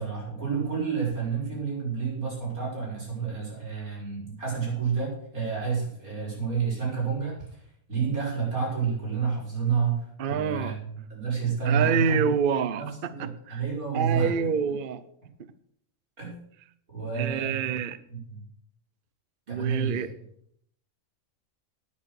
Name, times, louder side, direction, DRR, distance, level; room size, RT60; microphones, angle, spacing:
voice 1, 0.0-12.3 12.8-14.3 16.2-16.4 16.9-17.7 18.1-18.5 19.5-20.1, right 6 dB, 90° right, -5 dB, 6.2 m, -29 dB
voice 2, 10.2-10.8 11.7-13.6 13.9-15.0 17.2-18.0 19.5-20.2, right 6 dB, 50° right, 14 dB, 0.7 m, -27 dB
10.0 x 9.5 x 6.5 m, 0.67 s
omnidirectional pair, 1.5 m